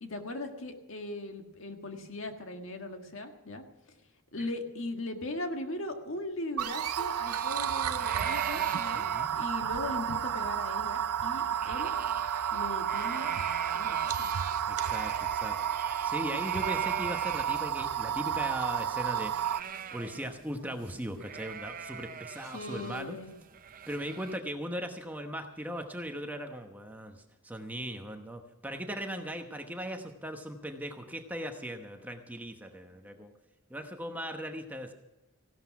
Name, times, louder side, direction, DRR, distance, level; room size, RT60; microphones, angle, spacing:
voice 1, 0.0-3.6 4.3-11.9 12.5-13.3 13.7-14.3 22.5-23.3, left 2 dB, 60° left, 4 dB, 1.7 m, -39 dB
sound 1, 6.6-19.6, right 9 dB, 90° right, 0.5 m, -31 dB
sound 2, 7.2-17.7 18.1-18.2 18.4-20.5 20.8-20.9 21.2-24.4, right 7 dB, 40° right, 0.5 m, -42 dB
voice 2, 8.9-9.3 14.7-15.6 15.8-19.3 19.9-23.2 23.9-33.3 33.7-34.9, equal, 5° right, 4 dB, 1.0 m, -38 dB
16.5 x 12.0 x 5.9 m, 1.0 s
head